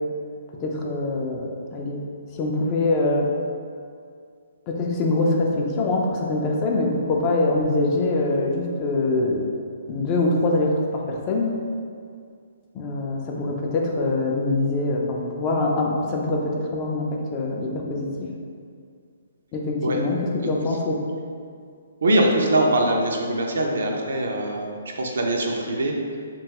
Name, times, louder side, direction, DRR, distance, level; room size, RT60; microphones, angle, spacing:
voice 1, 0.6-2.0 2.3-3.3 4.7-9.4 9.9-11.5 12.7-18.3 19.5-21.0, left 2 dB, 30° left, -1 dB, 0.4 m, -24 dB
voice 2, 22.0-26.0, right 1 dB, 70° right, 1 dB, 0.4 m, -22 dB
2.9 x 2.2 x 2.8 m, 2.2 s
hypercardioid pair, 135°, 0 cm